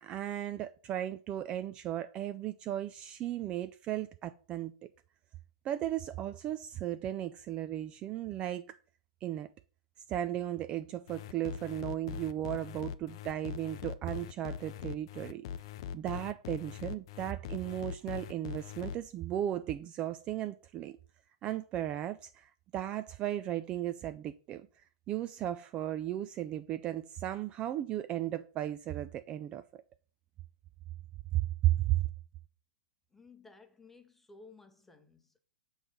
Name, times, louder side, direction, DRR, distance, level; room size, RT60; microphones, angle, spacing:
voice 1, 0.0-4.9 5.6-8.8 9.2-9.5 10.1-15.4 15.9-21.0 21.4-29.6 31.3-32.0, right 13 dB, 30° right, 0.3 m, -35 dB
sound 1, 11.1-18.9, left 8 dB, 55° left, 0.5 m, -41 dB
voice 2, 33.1-35.4, left 3 dB, 5° left, 0.9 m, -56 dB
6.2 x 3.2 x 5.2 m
hypercardioid pair, 110°, 3 cm